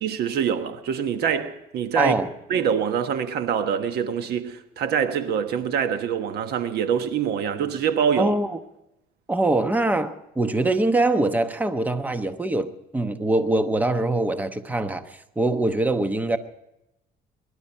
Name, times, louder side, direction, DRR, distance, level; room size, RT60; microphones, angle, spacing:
voice 1, 0.0-2.2 2.5-8.3, right 7 dB, 70° right, 1.3 m, -25 dB
voice 2, 1.9-2.3 8.2-8.6 9.3-16.4, right 2 dB, 10° right, 1.0 m, -23 dB
22.5 x 11.5 x 4.4 m
cardioid pair, 110°, 17 cm